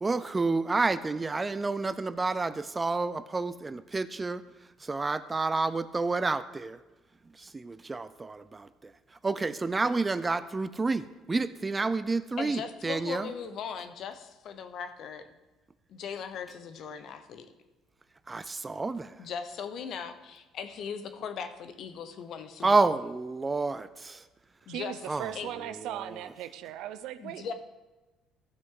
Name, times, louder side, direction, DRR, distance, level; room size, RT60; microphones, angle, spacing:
voice 1, 0.0-4.4 4.8-6.8 7.4-8.7 9.2-13.3 18.3-19.1 22.6-24.2 25.1-25.3, right 3 dB, 15° right, 14 dB, 0.4 m, -29 dB
voice 2, 12.4-15.3 15.9-17.5 19.2-22.8 24.7-24.9 25.3-25.5 27.2-27.5, left 6 dB, 55° left, 9 dB, 0.9 m, -39 dB
voice 3, 24.7-27.5, right 11 dB, 75° right, 13 dB, 0.6 m, -38 dB
15.0 x 6.1 x 3.8 m, 1.1 s
cardioid pair, 125°, 0 cm